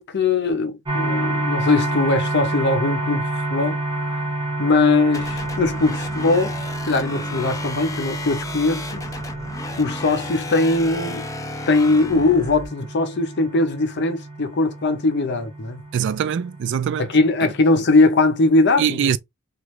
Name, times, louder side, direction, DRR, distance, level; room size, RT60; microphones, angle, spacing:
voice 1, 0.0-3.8 4.6-6.5 6.9-9.0 9.8-11.3 11.7-15.8 17.0-19.0, left 3 dB, 55° left, 0.7 m, -20 dB
sound 1, 0.9-18.6, right 2 dB, 25° right, 0.6 m, -29 dB
sound 2, 5.1-12.7, left 2 dB, 15° left, 0.4 m, -34 dB
voice 2, 15.9-17.1 18.8-19.2, right 8 dB, 60° right, 0.3 m, -22 dB
3.1 x 2.4 x 3.0 m
head